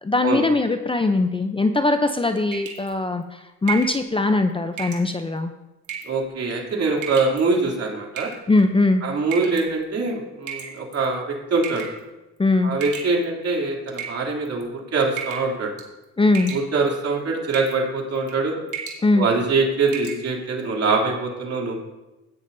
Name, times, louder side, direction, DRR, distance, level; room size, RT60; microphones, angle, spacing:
voice 1, 0.0-5.5 8.5-9.0 12.4-12.7 16.2-16.5 19.0-19.3, left 2 dB, 15° left, 7 dB, 0.6 m, -20 dB
sound 1, 2.5-2.9 3.7-4.0 4.8-5.1 5.8-6.2 7.0-7.4 8.2-8.6 9.3-9.6 10.5-11.1 11.6-12.0 12.8-13.5 13.9-14.6 15.2-15.5 15.8-16.0 16.3-16.9 17.5-17.8 18.2-18.4 18.7-19.0 19.4-19.5 19.9-20.2, right 7 dB, 85° right, 1.9 m, -33 dB
voice 2, 6.1-8.3 9.0-11.9 12.6-15.7 16.5-18.6 19.1-21.8, right 3 dB, 55° right, -2 dB, 2.9 m, -23 dB
15.5 x 9.1 x 2.7 m, 1.0 s
cardioid pair, 90°, 30 cm